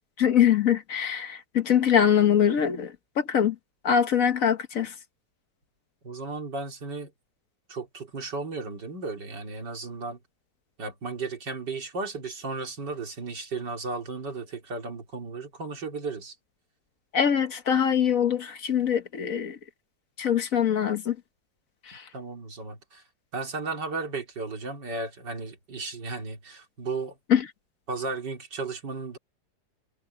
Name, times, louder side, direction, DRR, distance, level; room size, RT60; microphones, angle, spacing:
voice 1, 0.2-3.5 3.8-4.9 17.1-19.6 20.2-21.1 21.9-22.0 27.3-27.4, left 8 dB, 55° left, 1.4 m, -23 dB
voice 2, 6.0-7.1 7.7-10.2 10.8-16.4 22.1-23.0 23.3-27.2 27.9-29.2, right 3 dB, 85° right, 3.7 m, -34 dB
omnidirectional pair, 1.8 m